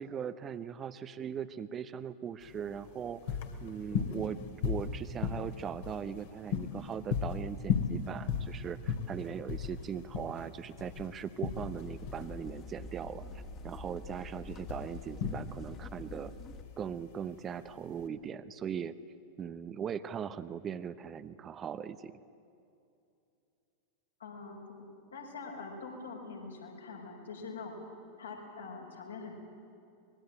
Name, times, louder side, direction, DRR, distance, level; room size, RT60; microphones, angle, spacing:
voice 1, 0.0-13.2 13.6-16.3 16.8-18.9 19.4-22.2, right 8 dB, 25° right, 13 dB, 0.8 m, -39 dB
sound 1, 2.4-18.1, left 6 dB, 50° left, 2.5 m, -37 dB
sound 2, 11.4-16.6, left 3 dB, 30° left, 2.3 m, -46 dB
voice 2, 24.2-24.8 25.1-27.8 28.2-29.3, left 4 dB, 70° left, 0 dB, 5.8 m, -44 dB
25.0 x 21.5 x 9.0 m, 2.6 s
figure-of-eight pair, 90°, 0 cm